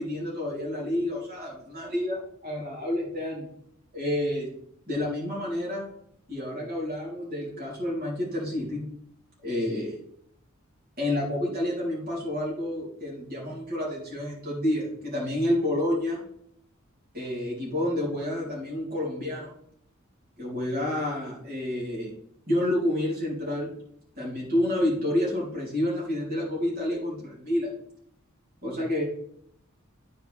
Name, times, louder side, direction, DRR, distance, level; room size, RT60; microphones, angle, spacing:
voice 1, 0.0-3.5 3.9-4.5 4.9-5.9 6.3-8.9 9.4-10.0 11.0-16.2 17.1-19.5 20.4-22.1 22.5-23.7 24.2-27.7 28.6-29.0, left 1 dB, 45° right, -5 dB, 3.6 m, -29 dB
13.0 x 5.1 x 3.4 m, 0.69 s
head